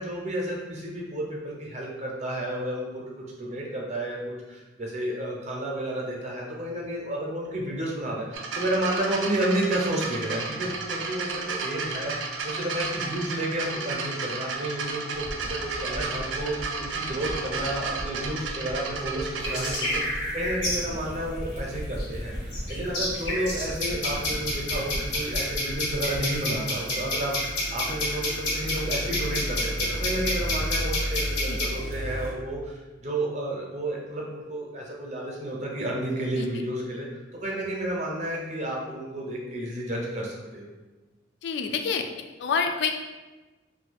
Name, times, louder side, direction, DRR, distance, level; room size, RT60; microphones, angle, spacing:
voice 1, 0.0-3.1 3.4-40.7, right 1 dB, 40° right, -2 dB, 0.7 m, -31 dB
sound 1, 8.3-20.0 21.0-21.1, right 4 dB, 80° right, 0.4 m, -33 dB
sound 2, 15.1-26.6, equal, 15° right, 0.3 m, -38 dB
sound 3, 19.4-32.3, left 1 dB, 90° left, 1.0 m, -29 dB
voice 2, 41.4-42.0 42.4-43.0, left 5 dB, 65° left, 5 dB, 0.3 m, -27 dB
2.6 x 2.4 x 3.9 m, 1.2 s
head